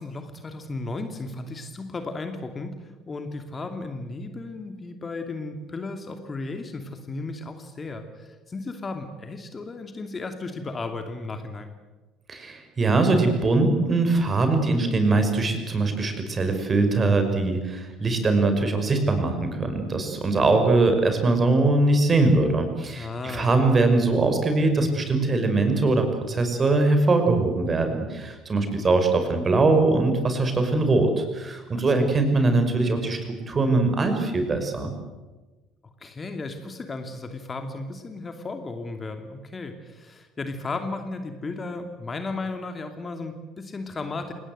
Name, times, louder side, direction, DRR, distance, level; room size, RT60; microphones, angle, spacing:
voice 1, 0.0-11.7 22.9-23.5 31.7-32.1 36.0-44.3, left 3 dB, 25° left, 6 dB, 2.7 m, -35 dB
voice 2, 12.3-33.2 33.5-34.9, right 3 dB, 30° right, 6 dB, 5.6 m, -22 dB
28.5 x 19.5 x 8.0 m, 1.2 s
figure-of-eight pair, 60°, 0 cm